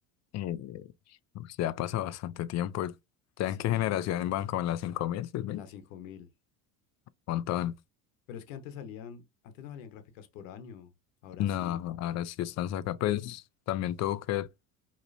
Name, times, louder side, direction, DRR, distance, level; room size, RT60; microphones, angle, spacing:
voice 1, 0.3-0.9 1.3-2.9 3.4-5.6 7.3-7.7 11.4-14.5, left 12 dB, 45° left, 0.5 m, -31 dB
voice 2, 3.5-4.3 5.5-6.3 8.3-10.9 11.2-11.8, left 8 dB, 90° left, 1.0 m, -45 dB
5.0 x 3.1 x 2.6 m
supercardioid pair, 110°, 38 cm